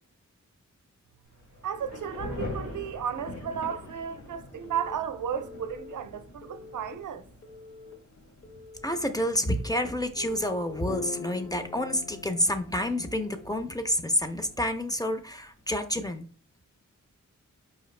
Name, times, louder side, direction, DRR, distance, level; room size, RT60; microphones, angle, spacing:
Thunder / Rain, 1.3-15.7, left 1 dB, 70° left, 2.1 m, -45 dB
voice 1, 1.6-7.2, right 8 dB, 80° right, 0.5 m, -34 dB
Telephone, 1.9-4.4 4.6-4.9 5.4-5.9 6.4-6.9 7.4-7.9 8.4-8.9 9.4-9.9 10.4-11.0 11.4-11.8, left 3 dB, 50° left, 0.8 m, -49 dB
voice 2, 8.8-16.3, equal, 15° left, 0.4 m, -29 dB
sound 1, 10.2-14.6, left 5 dB, 85° left, 0.5 m, -42 dB
4.8 x 2.4 x 3.1 m
wide cardioid pair, 90°, 30 cm